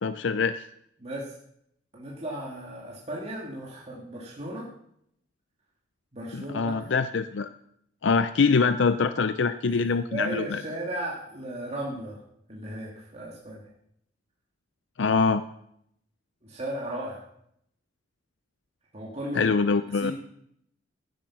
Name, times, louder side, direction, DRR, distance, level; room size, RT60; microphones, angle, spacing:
voice 1, 0.0-0.6 6.3-7.5 8.0-10.6 15.0-15.4 19.3-20.1, left 4 dB, 75° left, 11 dB, 0.5 m, -24 dB
voice 2, 1.0-1.3 1.9-4.7 6.1-6.9 9.7-9.8 10.1-12.2 12.5-13.6 16.4-17.2 18.9-19.5 20.0-20.1, right 1 dB, 35° right, -4 dB, 2.4 m, -35 dB
15.5 x 8.1 x 6.0 m, 0.73 s
head